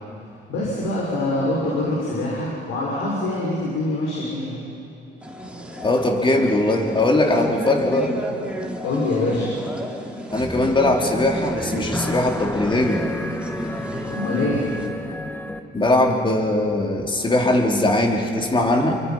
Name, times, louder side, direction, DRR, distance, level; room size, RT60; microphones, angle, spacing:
voice 1, 0.5-4.6 8.8-9.5 14.1-14.6, left 2 dB, 90° left, -4 dB, 5.6 m, -24 dB
sound 1, 5.2-14.9, equal, 5° right, 3.2 m, -33 dB
voice 2, 5.8-8.2 10.3-13.1 15.7-18.9, left 1 dB, 25° left, 1 dB, 4.0 m, -20 dB
sound 2, 10.4-15.6, left 1 dB, 10° left, 1.6 m, -31 dB
29.5 x 24.0 x 5.8 m, 3.0 s
cardioid pair, 90°, 20 cm